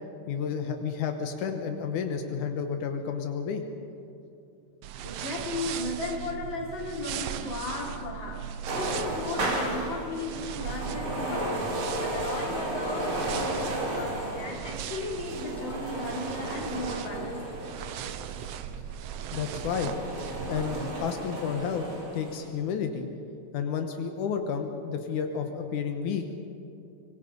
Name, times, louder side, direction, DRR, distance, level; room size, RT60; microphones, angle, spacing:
voice 1, 0.3-3.6 19.3-19.9 20.5-21.9 22.1-23.1 23.5-26.2, left 7 dB, 85° left, 5 dB, 2.6 m, -31 dB
sound 1, 4.8-20.9, right 9 dB, 70° right, 1.7 m, -38 dB
voice 2, 5.0-11.7 12.0-17.4, left 2 dB, 40° left, -2 dB, 4.0 m, -36 dB
sound 2, 8.7-18.5 19.1-22.5, right 1 dB, 45° right, 3.9 m, -34 dB
24.5 x 21.5 x 5.3 m, 2.7 s
omnidirectional pair, 3.4 m